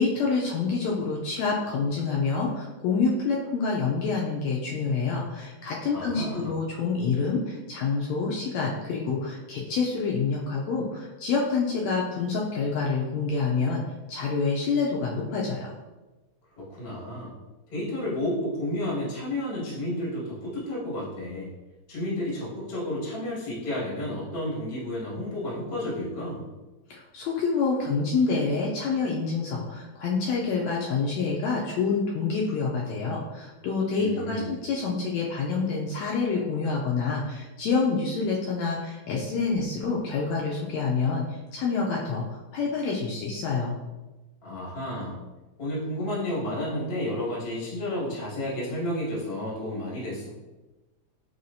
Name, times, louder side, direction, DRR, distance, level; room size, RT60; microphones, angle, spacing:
voice 1, 0.0-15.7 26.9-43.8, left 4 dB, 80° left, -2 dB, 1.6 m, -27 dB
voice 2, 5.9-6.5 16.6-17.3 17.7-21.5 21.9-26.5 34.0-34.6 44.4-45.2 45.6-50.3, left 1 dB, 40° left, -7 dB, 0.7 m, -31 dB
5.7 x 3.1 x 2.6 m, 1.1 s
omnidirectional pair, 3.5 m